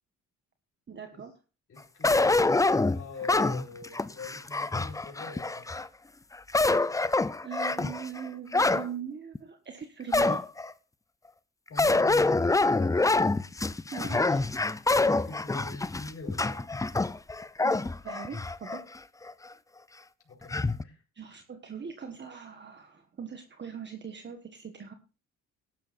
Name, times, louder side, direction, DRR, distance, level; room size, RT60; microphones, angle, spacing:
voice 1, 0.9-1.3 7.4-10.4 13.9-14.4 17.6-17.8 18.0-18.8 21.1-24.9, right 7 dB, 35° right, 1.4 m, -41 dB
voice 2, 1.7-5.7 11.7-13.1 15.1-16.7 20.3-20.6 20.8-21.0, left 4 dB, 50° left, 4.6 m, -43 dB
sound 1, 2.0-5.9 6.3-8.9 9.3-9.4 10.1-10.7 11.8-18.8 19.3-19.4 20.5-20.8, left 3 dB, 10° left, 0.5 m, -26 dB
17.5 x 11.5 x 2.6 m
cardioid pair, 90°, 30 cm